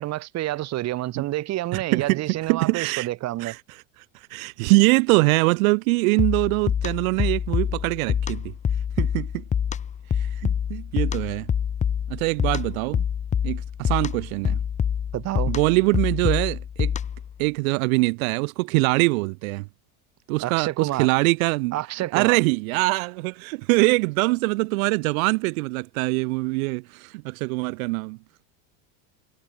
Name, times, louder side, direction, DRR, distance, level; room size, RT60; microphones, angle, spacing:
voice 1, 0.0-3.6 15.1-15.5 20.4-21.1 21.7-22.4, right 15 dB, 40° right, 3.8 m, -28 dB
voice 2, 1.7-3.1 3.4-3.6 4.3-8.5 9.0-9.4 10.2-11.5 12.1-13.0 13.4-14.6 15.5-16.9 17.4-19.7 20.3-21.8 22.1-28.2, right 27 dB, 85° right, 2.0 m, -23 dB
sound 1, 6.2-17.3, left 8 dB, 20° left, 0.9 m, -26 dB
cardioid pair, 165°, 40 cm